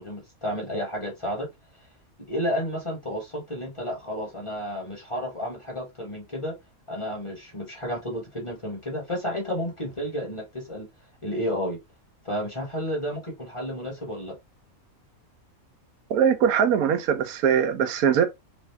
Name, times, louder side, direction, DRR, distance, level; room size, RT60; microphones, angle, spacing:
voice 1, 0.0-1.5 2.2-6.5 6.9-10.9 11.2-11.8 12.2-14.4, equal, 25° left, 0.9 m, -31 dB
voice 2, 16.1-18.3, right 8 dB, 85° right, 1.1 m, -21 dB
3.1 x 2.4 x 3.3 m
omnidirectional pair, 1.5 m